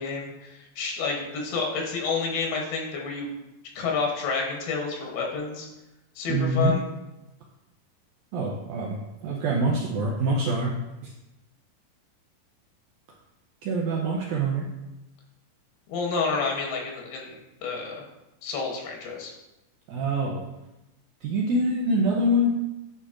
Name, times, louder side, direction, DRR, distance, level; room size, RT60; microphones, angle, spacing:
voice 1, 0.0-3.3 3.8-5.7 6.2-6.8 15.9-18.0 18.4-19.3, left 4 dB, 85° left, 0 dB, 2.8 m, -29 dB
voice 2, 6.3-6.7 8.3-10.7 13.6-14.7 19.9-20.4 21.2-22.6, right 1 dB, 80° right, -3 dB, 1.7 m, -25 dB
9.8 x 4.6 x 2.5 m, 0.98 s
omnidirectional pair, 4.1 m